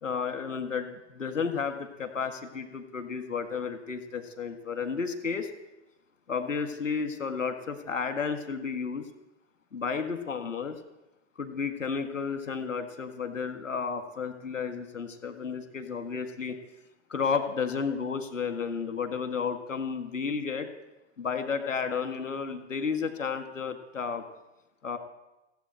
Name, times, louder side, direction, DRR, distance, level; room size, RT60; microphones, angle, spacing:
voice 1, 0.0-5.5 6.3-9.0 9.7-10.8 11.4-16.6 17.1-20.7 21.2-24.2 24.8-25.0, left 5 dB, 80° left, 7 dB, 1.9 m, -32 dB
16.5 x 8.2 x 8.8 m, 0.98 s
figure-of-eight pair, 110°, 38 cm